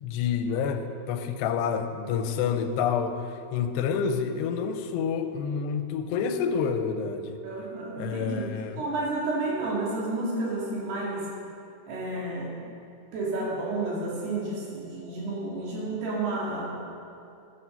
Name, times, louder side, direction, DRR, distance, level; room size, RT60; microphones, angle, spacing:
voice 1, 0.0-7.4 8.0-8.8, left 6 dB, 90° left, 8 dB, 2.8 m, -28 dB
voice 2, 7.4-11.3 11.9-12.5 13.1-16.8, right 2 dB, 75° right, -5 dB, 4.5 m, -31 dB
12.0 x 10.0 x 5.3 m, 2.6 s
omnidirectional pair, 4.8 m